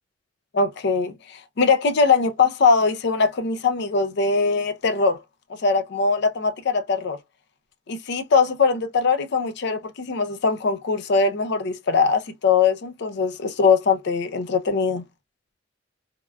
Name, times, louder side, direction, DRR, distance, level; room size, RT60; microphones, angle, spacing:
voice 1, 0.5-5.2 5.6-7.2 7.9-15.0, left 4 dB, 60° left, 0.5 m, -21 dB
3.5 x 2.2 x 2.2 m
head